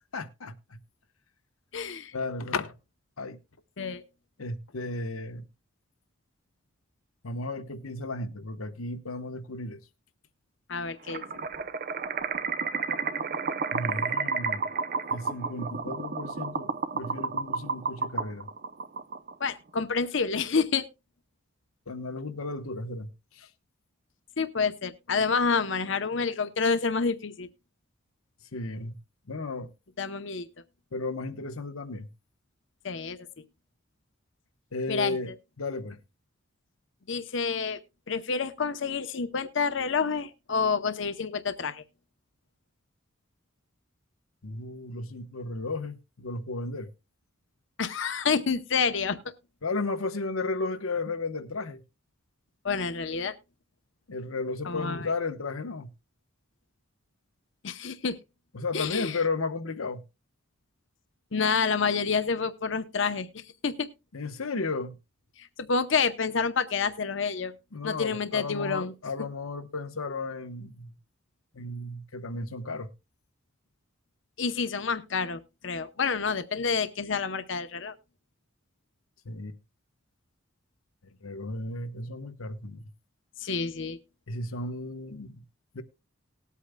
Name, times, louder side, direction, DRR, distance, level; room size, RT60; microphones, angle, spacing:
voice 1, 0.1-0.8 2.1-2.7 3.2-3.4 4.4-5.4 7.2-9.8 13.7-14.7 15.1-18.5 21.9-23.5 28.5-29.0 29.3-29.7 30.9-32.1 34.7-35.3 35.6-36.0 44.4-46.9 49.6-51.8 54.1-55.9 58.5-60.0 64.1-65.0 67.7-70.9 71.5-72.9 79.2-79.6 81.0-82.9 84.3-85.4 85.7-85.8, left 3 dB, 90° left, 1.0 m, -34 dB
voice 2, 1.7-2.1 3.8-4.0 10.7-11.2 19.4-20.8 24.4-27.5 30.0-30.5 32.8-33.3 34.9-35.2 37.1-37.8 38.1-41.8 47.8-49.2 52.6-53.3 54.7-55.1 57.6-58.2 58.7-59.1 61.3-63.9 65.4-67.5 67.8-68.9 74.4-77.9 83.4-84.0, left 5 dB, 60° left, 0.7 m, -28 dB
sound 1, 11.1-19.5, right 5 dB, 45° right, 0.6 m, -31 dB
19.5 x 8.3 x 2.2 m
head